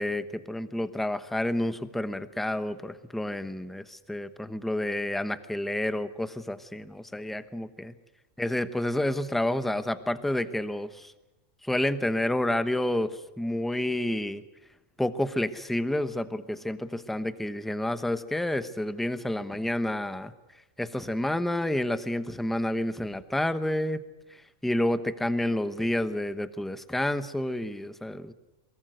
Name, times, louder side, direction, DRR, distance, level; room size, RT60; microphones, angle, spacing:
voice 1, 0.0-7.9 8.4-11.1 11.6-14.4 15.0-20.3 20.8-24.0 24.6-28.3, left 1 dB, ahead, 11 dB, 0.8 m, -29 dB
23.0 x 22.0 x 8.0 m, 1.0 s
omnidirectional pair, 1.4 m